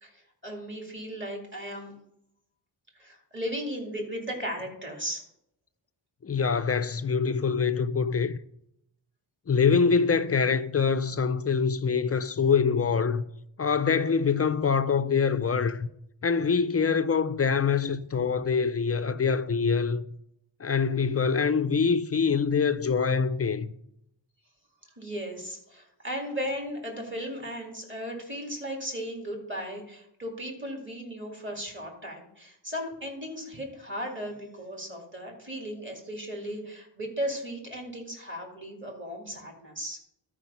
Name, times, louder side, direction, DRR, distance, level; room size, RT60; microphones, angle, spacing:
voice 1, 0.0-1.9 3.0-5.2 25.0-40.0, equal, 25° right, 2.4 m, -36 dB
voice 2, 6.2-8.4 9.5-13.2 13.6-15.9 16.2-20.0 20.6-23.7, left 5 dB, 35° left, 0.4 m, -25 dB
12.5 x 4.9 x 5.6 m
wide cardioid pair, 140°, 47 cm